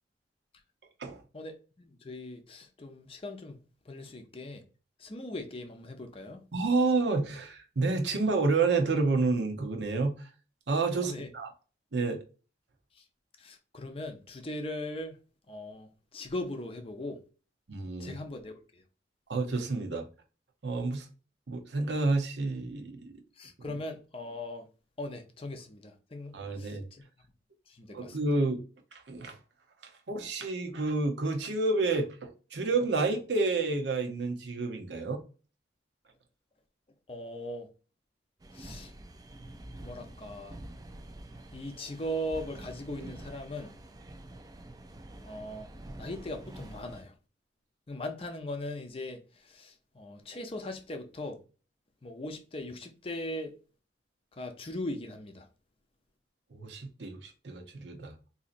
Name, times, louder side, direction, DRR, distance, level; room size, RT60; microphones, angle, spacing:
voice 1, 1.3-3.6 3.9-4.6 5.0-6.4 10.9-11.3 13.4-15.2 15.5-17.2 18.0-18.8 23.4-24.7 25.0-27.0 27.7-28.2 37.1-37.7 38.5-38.9 39.8-40.6 41.5-43.7 45.2-45.7 46.0-47.1 47.9-49.2 49.4-51.4 52.0-53.5 54.4-55.4, left 1 dB, 30° left, 0.5 m, -39 dB
voice 2, 6.5-10.3 10.7-11.5 11.9-12.2 17.7-18.2 19.3-20.1 20.6-21.1 21.5-23.1 23.6-23.8 26.3-26.9 27.9-28.6 28.9-29.4 30.1-35.2 56.5-58.1, right 3 dB, 75° right, 0.8 m, -29 dB
sound 1, 38.4-47.0, right 1 dB, 20° right, 0.3 m, -47 dB
4.0 x 2.7 x 2.5 m
head